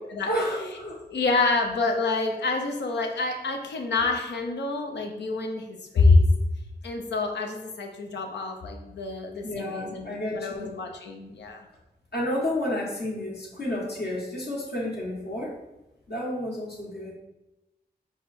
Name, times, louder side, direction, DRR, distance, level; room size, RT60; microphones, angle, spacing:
voice 1, 0.3-1.0 9.4-10.7 12.1-15.5 16.1-17.1, left 1 dB, 65° left, -4 dB, 1.5 m, -31 dB
voice 2, 1.1-6.2 6.8-11.7, left 3 dB, 85° left, 3 dB, 0.7 m, -26 dB
4.9 x 2.4 x 4.2 m, 0.98 s
cardioid pair, 45°, 18 cm